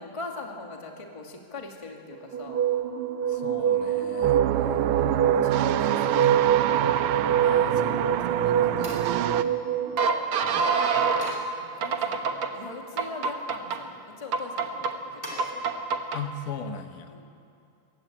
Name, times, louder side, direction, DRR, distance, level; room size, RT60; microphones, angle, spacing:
voice 1, 0.0-2.6 4.4-6.9 8.5-9.7 10.8-16.0 17.1-17.3, left 3 dB, 10° left, 1 dB, 1.7 m, -43 dB
sound 1, 2.3-11.3 11.8-12.5 13.0-13.8 14.3-14.9 15.4-16.2, right 7 dB, 55° right, 1.7 m, -25 dB
voice 2, 3.3-4.4 4.9-5.3 5.7-6.2 7.4-9.0 10.4-10.7 16.1-17.2, left 6 dB, 85° left, 8 dB, 2.7 m, -40 dB
sound 2, 4.2-9.4, right 12 dB, 85° right, 2.2 m, -26 dB
sound 3, 8.8-10.2 11.2-12.3 12.8-13.5 15.2-15.5, left 1 dB, 10° right, 3.3 m, -44 dB
22.5 x 17.0 x 8.6 m, 2.6 s
omnidirectional pair, 3.6 m